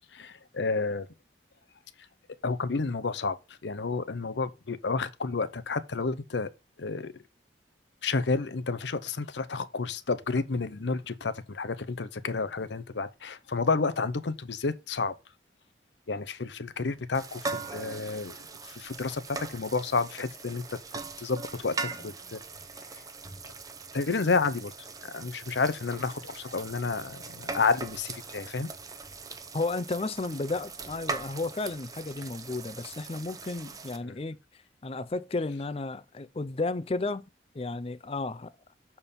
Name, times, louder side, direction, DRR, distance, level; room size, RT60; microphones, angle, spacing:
voice 1, 0.1-1.1 2.4-3.4 3.6-6.5 6.8-7.1 8.0-15.1 16.1-18.4 18.6-20.8 21.2-22.4 23.9-24.7 25.0-28.7 34.1-34.2, left 4 dB, 80° left, 0.7 m, -30 dB
sound 1, 17.1-34.0, right 4 dB, 20° right, 0.7 m, -40 dB
voice 2, 29.5-34.4 34.8-37.3 37.5-38.5, left 3 dB, 30° left, 0.4 m, -33 dB
7.1 x 4.5 x 5.2 m
head